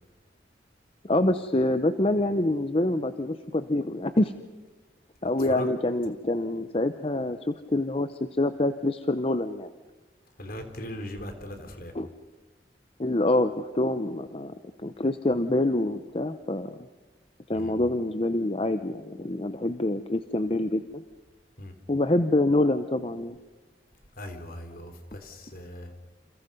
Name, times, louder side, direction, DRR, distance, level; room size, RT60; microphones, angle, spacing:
voice 1, 1.0-4.3 5.2-9.7 11.9-12.1 13.0-16.8 17.5-21.0 21.9-23.4, left 1 dB, 35° left, 10 dB, 0.8 m, -26 dB
voice 2, 5.2-5.7 10.4-11.9 17.5-17.8 21.6-21.7 24.2-25.9, left 1 dB, 55° left, 6 dB, 3.5 m, -39 dB
29.0 x 28.0 x 5.4 m, 1.2 s
head